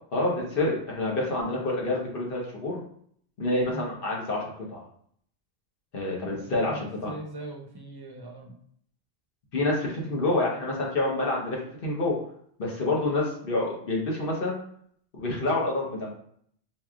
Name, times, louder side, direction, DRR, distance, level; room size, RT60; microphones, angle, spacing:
voice 1, 0.1-2.8 3.4-4.8 5.9-7.1 9.5-12.2 12.6-14.6 15.2-16.1, left 2 dB, 55° left, -2 dB, 1.1 m, -28 dB
voice 2, 6.2-8.6 13.0-13.2, right 1 dB, 30° right, 1 dB, 0.5 m, -41 dB
4.4 x 3.1 x 2.4 m, 0.64 s
omnidirectional pair, 1.1 m